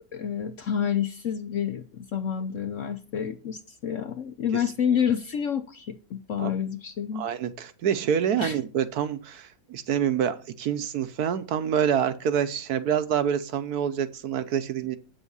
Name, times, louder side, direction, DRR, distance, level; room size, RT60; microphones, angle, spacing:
voice 1, 0.1-7.2 8.4-8.6, left 8 dB, 60° left, 10 dB, 0.8 m, -29 dB
voice 2, 7.1-15.0, right 8 dB, 70° right, 12 dB, 1.2 m, -27 dB
8.5 x 7.1 x 5.4 m, 0.36 s
omnidirectional pair, 1.8 m